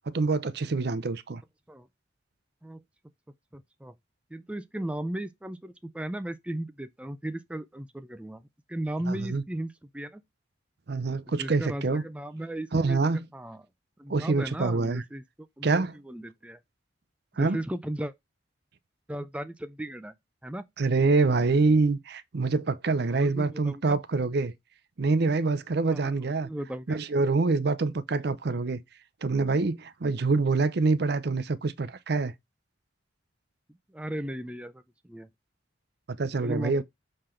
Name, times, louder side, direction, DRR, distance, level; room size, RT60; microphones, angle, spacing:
voice 1, 0.1-1.4 9.1-9.4 10.9-12.0 12.7-13.3 14.1-15.0 15.6-16.0 17.4-17.6 20.8-24.5 25.0-26.5 26.9-28.8 29.2-32.3 36.2-36.8, right 3 dB, 55° right, 0.5 m, -25 dB
voice 2, 3.5-3.9 4.3-8.4 8.7-10.2 11.4-13.0 13.3-13.7 14.0-15.2 15.6-16.6 17.4-18.1 19.1-20.1 20.4-20.6 23.1-24.0 25.9-26.1 26.4-27.0 33.9-35.3 36.4-36.8, right 1 dB, 5° right, 0.4 m, -36 dB
6.5 x 3.8 x 4.3 m
head